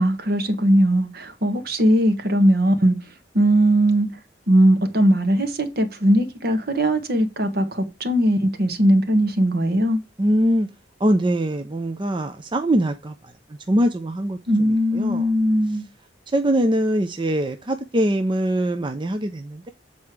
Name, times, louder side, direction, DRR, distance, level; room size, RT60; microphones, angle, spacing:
voice 1, 0.0-2.9 3.3-4.1 4.5-10.0 14.5-15.8, right 1 dB, 60° right, 1.4 m, -19 dB
voice 2, 10.2-10.7 11.0-15.2 16.3-19.7, right 1 dB, 25° right, 0.6 m, -23 dB
7.8 x 4.3 x 4.7 m
head